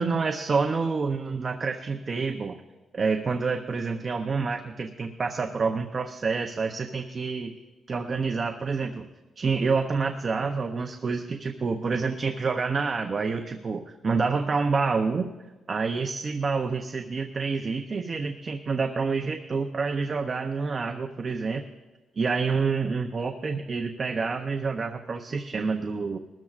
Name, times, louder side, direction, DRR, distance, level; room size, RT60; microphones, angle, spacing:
voice 1, 0.0-2.6 2.9-7.5 7.9-9.1 9.4-15.3 15.7-21.6 22.2-26.2, right 4 dB, 30° right, 5 dB, 0.6 m, -28 dB
21.0 x 13.5 x 2.4 m, 1.2 s
wide cardioid pair, 170°, 0 cm